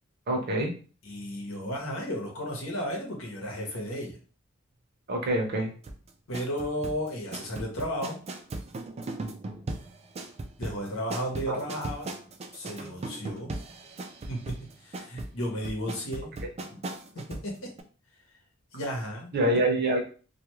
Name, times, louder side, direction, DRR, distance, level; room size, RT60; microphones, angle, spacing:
voice 1, 0.3-0.7 5.1-5.7 11.5-11.6 19.3-20.0, right 1 dB, 50° right, 1 dB, 0.7 m, -25 dB
voice 2, 1.0-4.2 6.3-8.2 10.6-12.1 12.5-13.5 14.3-16.4 16.7-16.8 17.1-17.7 18.7-19.3, equal, 70° left, 0 dB, 0.9 m, -34 dB
sound 1, 5.8-17.5 17.8-17.9, right 2 dB, 30° right, 0.3 m, -38 dB
2.3 x 2.2 x 3.0 m, 0.38 s
head